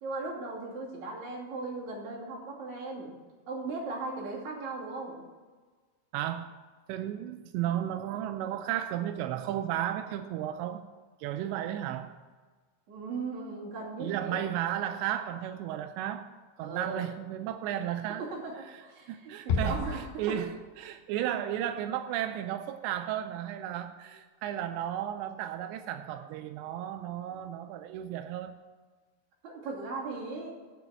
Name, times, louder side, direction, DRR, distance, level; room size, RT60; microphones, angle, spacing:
voice 1, 0.0-3.1 3.5-5.2 12.9-14.4 16.6-17.1 18.2-18.5 18.8-20.3 29.4-30.6, right 3 dB, 45° right, -5 dB, 3.4 m, -37 dB
voice 2, 6.1-6.5 6.9-10.8 11.2-12.2 14.0-16.3 16.6-18.2 18.6-18.8 19.1-28.5, right 11 dB, 90° right, 8 dB, 2.5 m, -34 dB
Bass drum, 19.5-20.9, left 4 dB, 75° left, 2.3 m, -32 dB
10.0 x 6.2 x 8.8 m, 1.4 s
omnidirectional pair, 5.6 m